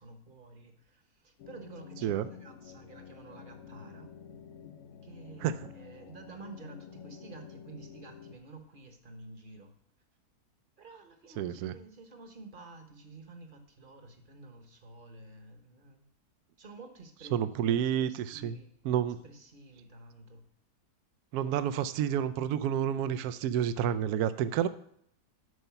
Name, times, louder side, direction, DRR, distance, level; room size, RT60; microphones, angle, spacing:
voice 1, 0.0-4.4 5.0-9.7 10.8-16.0 16.6-18.7 19.0-20.4, right 3 dB, 35° right, 6 dB, 1.1 m, -51 dB
sound 1, 1.4-8.4, left 8 dB, 65° left, 0.8 m, -50 dB
voice 2, 11.4-11.7 17.3-18.6 18.8-19.2 21.3-24.7, right 9 dB, 75° right, 13 dB, 1.0 m, -29 dB
8.0 x 5.5 x 5.7 m, 0.67 s
omnidirectional pair, 1.7 m